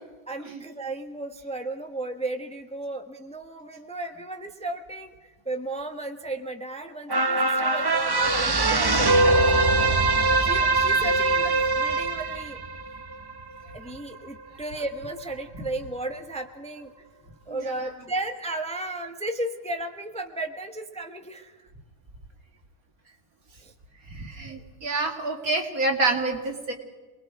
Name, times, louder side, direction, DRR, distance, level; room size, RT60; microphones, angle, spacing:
voice 1, 0.3-9.4 10.4-12.6 13.7-16.9 17.5-21.7 23.6-23.7 24.4-24.6, right 2 dB, 5° left, 5 dB, 1.1 m, -34 dB
sound 1, 7.1-13.7 14.2-14.3, right 2 dB, 30° right, 0.5 m, -22 dB
voice 2, 17.5-17.9 24.1-26.7, right 3 dB, 70° right, 2 dB, 3.0 m, -28 dB
28.0 x 20.5 x 4.8 m, 1.3 s
omnidirectional pair, 1.5 m